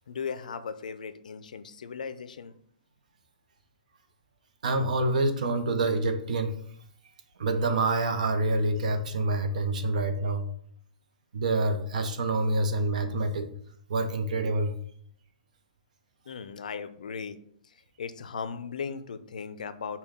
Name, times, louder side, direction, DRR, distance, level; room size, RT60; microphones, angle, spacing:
voice 1, 0.1-2.5 16.3-17.4 17.6-20.0, left 6 dB, 85° left, 12 dB, 0.4 m, -37 dB
voice 2, 4.6-6.5 7.4-10.5 11.3-13.5 13.9-14.7, right 2 dB, 75° right, 8 dB, 0.7 m, -27 dB
5.5 x 2.2 x 3.5 m, 0.65 s
hypercardioid pair, 150°, 4 cm